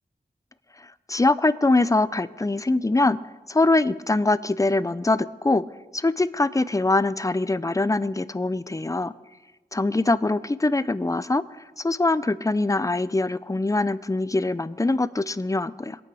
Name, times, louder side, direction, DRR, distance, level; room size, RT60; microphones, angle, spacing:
voice 1, 1.1-3.2 3.5-5.6 5.9-9.1 9.7-11.4 11.8-16.0, left 2 dB, 20° left, 15 dB, 0.6 m, -23 dB
22.0 x 8.6 x 4.9 m, 1.2 s
wide cardioid pair, 60°, 18 cm